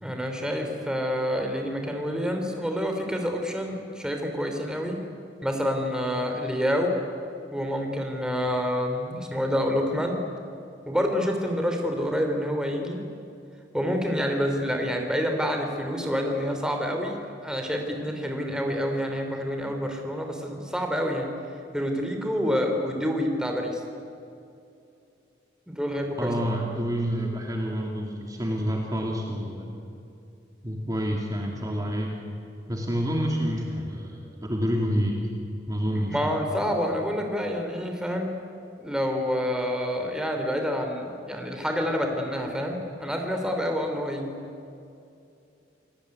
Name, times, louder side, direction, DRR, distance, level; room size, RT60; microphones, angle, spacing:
voice 1, 0.0-5.0 5.4-7.0 7.5-10.2 10.8-13.0 13.7-21.3 21.7-23.8 25.7-26.3 36.1-38.3 38.8-44.3, equal, 5° right, 3 dB, 3.2 m, -28 dB
voice 2, 26.2-29.7 30.6-32.1 32.7-35.3 35.7-36.4, equal, 20° right, -1 dB, 2.6 m, -28 dB
28.5 x 18.5 x 9.7 m, 2.6 s
head